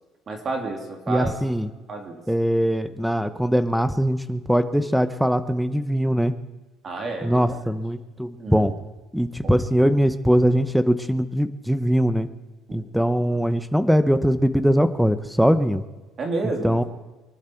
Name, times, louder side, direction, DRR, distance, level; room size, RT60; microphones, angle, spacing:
voice 1, 0.3-1.4 1.9-2.2 6.8-7.8 8.4-8.7 12.7-12.8 13.2-13.5 16.2-16.8, right 3 dB, 35° right, 3 dB, 2.7 m, -31 dB
voice 2, 1.1-1.7 2.3-6.3 7.2-8.7 9.1-12.3 12.7-15.8 16.6-16.8, equal, ahead, 12 dB, 0.8 m, -21 dB
24.0 x 11.5 x 4.5 m, 1.2 s
cardioid pair, 135°, 0 cm